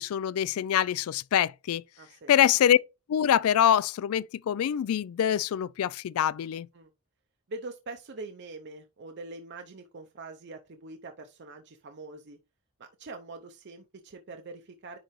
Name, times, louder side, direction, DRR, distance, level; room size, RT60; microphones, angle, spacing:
voice 1, 0.0-1.8 2.3-2.8 3.1-6.7, left 10 dB, 80° left, 0.3 m, -24 dB
voice 2, 2.0-2.4 6.7-6.9 7.5-12.4 12.8-15.0, right 3 dB, 55° right, 0.6 m, -43 dB
10.0 x 3.8 x 3.1 m
head